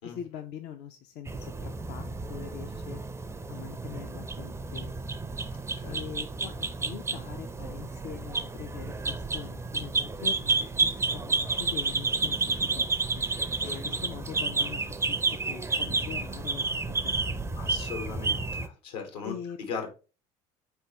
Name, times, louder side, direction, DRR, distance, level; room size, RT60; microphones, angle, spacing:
voice 1, 0.0-3.0 3.5-5.0 5.9-12.9 13.1-13.2 13.8-14.8 15.1-17.8 19.2-19.6, left 9 dB, 55° left, 6 dB, 0.5 m, -43 dB
sound 1, 1.3-18.7, right 3 dB, 15° right, 0.5 m, -31 dB
voice 2, 13.6-14.0 17.6-19.3 19.6-19.9, left 5 dB, 80° left, 5 dB, 1.2 m, -38 dB
4.0 x 3.5 x 2.9 m, 0.32 s
hypercardioid pair, 65°, 21 cm